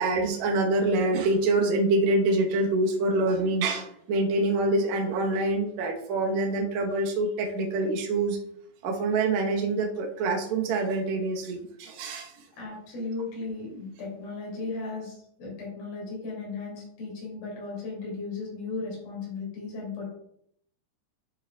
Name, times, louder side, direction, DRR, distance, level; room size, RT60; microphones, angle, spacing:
voice 1, 0.0-8.4 8.8-12.3, right 2 dB, 65° right, 0 dB, 1.9 m, -25 dB
voice 2, 12.6-20.1, left 3 dB, 65° left, -4 dB, 4.5 m, -36 dB
11.5 x 4.8 x 2.4 m, 0.70 s
omnidirectional pair, 4.6 m